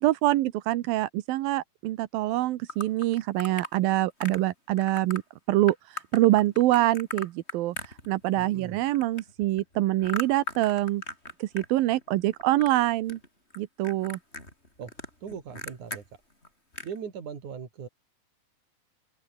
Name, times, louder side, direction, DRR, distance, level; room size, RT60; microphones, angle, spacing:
voice 1, 0.0-5.2 5.5-11.0 11.4-13.2 13.6-14.2, right 16 dB, 70° right, 2.5 m, -25 dB
sound 1, 2.7-3.7 4.2-4.5 4.8-5.2 5.7-8.4 8.7-11.7 11.9-12.8 13.1-13.6 13.8-16.0 16.4-16.5 16.7-17.0, left 1 dB, 15° left, 6.9 m, -38 dB
voice 2, 8.3-8.8 14.8-14.9 15.2-16.0 16.8-17.9, right 7 dB, 50° right, 4.8 m, -39 dB
open air
omnidirectional pair, 4.7 m